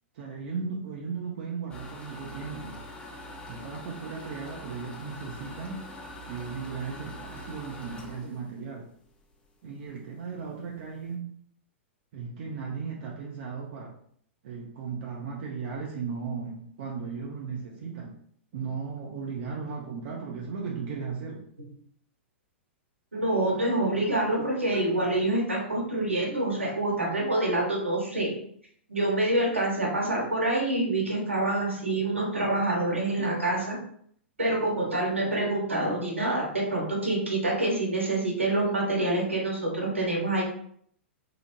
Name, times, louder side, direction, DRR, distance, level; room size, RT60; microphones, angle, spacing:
voice 1, 0.1-2.8 3.5-5.9 6.3-8.9 9.6-11.3 12.1-14.0 14.4-18.2 18.5-21.4, right 5 dB, 50° right, -2 dB, 0.5 m, -36 dB
sound 1, 1.7-9.5 9.9-10.0 10.4-10.5 10.7-11.1, left 1 dB, 15° left, 0.5 m, -43 dB
voice 2, 23.1-28.3 28.9-33.8 34.4-40.4, right 2 dB, 80° right, -2 dB, 1.1 m, -26 dB
2.8 x 2.0 x 2.9 m, 0.64 s
figure-of-eight pair, 105°, 7 cm